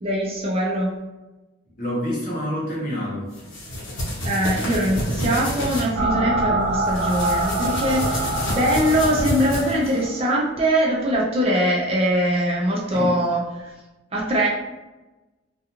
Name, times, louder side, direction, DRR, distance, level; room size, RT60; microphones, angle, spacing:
voice 1, 0.0-0.9 4.2-13.7 14.1-14.5, equal, 30° right, -4 dB, 0.4 m, -22 dB
voice 2, 1.8-3.3 12.9-13.2, equal, 40° left, -5 dB, 0.9 m, -27 dB
sound 1, 3.3-5.9 6.8-10.0, equal, 70° left, 0.9 m, -28 dB
sound 2, 6.0-10.6, right 2 dB, 85° right, 0.5 m, -25 dB
2.3 x 2.3 x 2.9 m, 1.1 s
head